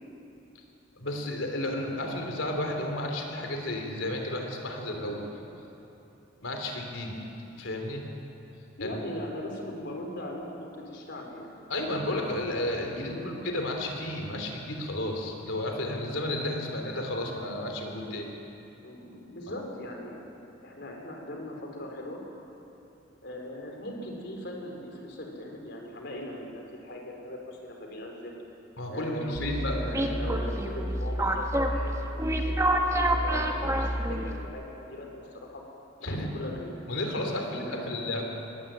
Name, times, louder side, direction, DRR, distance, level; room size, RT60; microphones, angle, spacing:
voice 1, 0.9-5.3 6.4-7.2 7.6-8.1 8.8-8.9 11.7-18.3 28.8-30.1 36.0-36.3 36.9-38.2, left 1 dB, 80° left, 2 dB, 3.3 m, -32 dB
voice 2, 8.8-11.5 13.1-13.3 17.0-17.2 18.8-20.3 20.6-22.2 23.2-28.3 28.9-35.6 36.0-36.7 37.1-38.2, left 1 dB, 60° left, 1 dB, 4.1 m, -39 dB
sound 1, 29.3-34.4, right 1 dB, 15° right, 1.5 m, -28 dB
21.0 x 15.5 x 8.9 m, 3.0 s
head